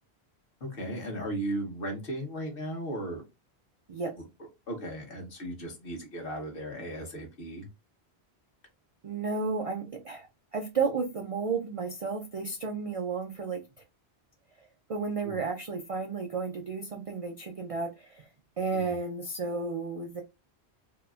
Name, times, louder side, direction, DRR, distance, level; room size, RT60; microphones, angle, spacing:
voice 1, 0.6-3.2 4.7-7.7 15.2-15.4 18.7-19.0, right 1 dB, 60° left, 1.1 m, -36 dB
voice 2, 9.0-10.3 10.5-13.6 14.6-18.3 18.6-20.2, right 4 dB, 65° right, 0.3 m, -32 dB
2.8 x 2.4 x 2.3 m
omnidirectional pair, 1.1 m